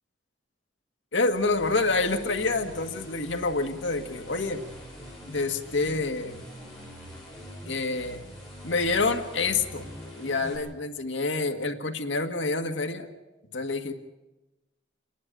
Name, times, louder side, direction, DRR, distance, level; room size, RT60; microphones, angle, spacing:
voice 1, 1.1-4.6 5.3-6.4 7.7-8.2 8.6-9.9 10.2-13.1 13.5-13.9, left 3 dB, 80° left, 5 dB, 1.8 m, -27 dB
sound 1, 1.2-10.6, equal, ahead, 7.8 m, -44 dB
29.0 x 11.0 x 9.1 m, 1.1 s
head